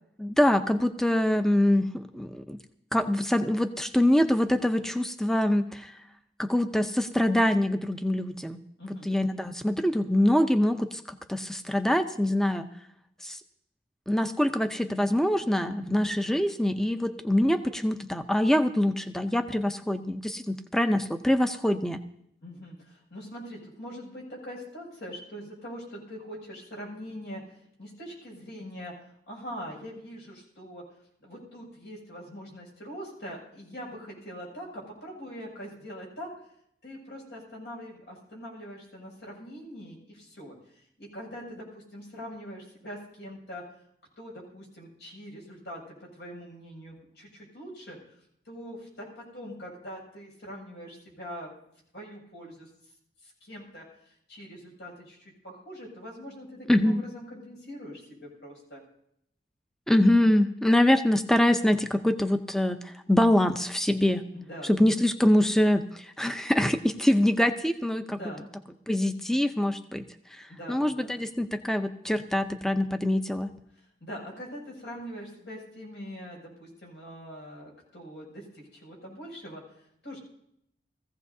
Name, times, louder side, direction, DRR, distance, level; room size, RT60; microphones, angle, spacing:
voice 1, 0.2-2.6 2.9-5.9 6.4-8.6 9.1-12.7 13.2-13.4 14.1-22.0 56.7-57.0 59.9-64.3 64.6-68.2 68.9-70.0 70.4-73.5, left 1 dB, 5° left, 8 dB, 0.6 m, -24 dB
voice 2, 8.8-9.1 22.4-30.8 31.2-36.3 36.8-43.6 44.2-48.2 48.4-51.5 51.9-52.7 53.2-58.8 64.3-64.7 68.1-68.4 70.5-71.1 73.7-80.2, equal, 85° left, -2 dB, 6.5 m, -43 dB
20.5 x 15.5 x 2.7 m, 0.74 s
head